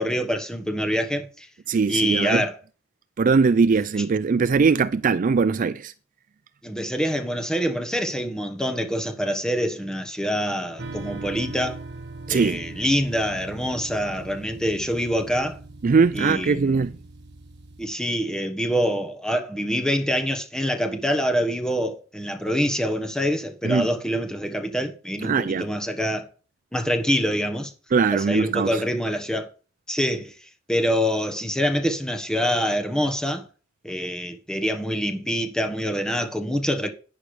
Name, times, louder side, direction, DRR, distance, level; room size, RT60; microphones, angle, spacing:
voice 1, 0.0-1.5 1.9-2.5 6.6-11.8 12.3-15.6 16.1-16.8 17.8-26.3 26.7-27.7 28.1-29.5 29.9-30.3 30.7-33.5 33.8-36.9, equal, 5° left, 1.3 m, -25 dB
voice 2, 1.7-2.4 3.2-5.9 12.3-12.6 15.8-17.0 23.6-23.9 25.2-25.7 27.9-28.8, right 5 dB, 40° right, 0.4 m, -21 dB
sound 1, 10.8-17.8, right 3 dB, 60° right, 1.6 m, -40 dB
11.0 x 9.8 x 3.3 m
head